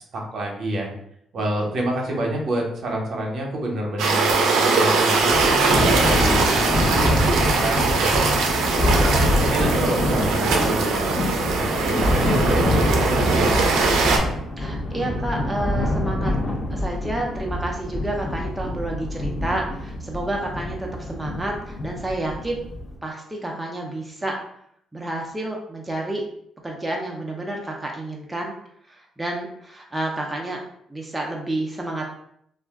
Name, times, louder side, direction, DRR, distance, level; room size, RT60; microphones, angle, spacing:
voice 1, 0.1-0.9 1.3-5.6 6.0-8.2 8.8-14.3, right 1 dB, 60° right, 0 dB, 0.8 m, -28 dB
sound 1, 4.0-14.2, right 4 dB, 85° right, 0.5 m, -21 dB
Thunder, 5.3-23.0, left 1 dB, 40° left, 0.6 m, -25 dB
voice 2, 14.6-16.3 16.7-22.6 23.0-24.4 24.9-26.3 26.6-28.6 28.9-30.6 30.9-32.1, right 1 dB, 10° right, -1 dB, 0.5 m, -29 dB
2.3 x 2.1 x 3.5 m, 0.70 s
cardioid pair, 90°, 0 cm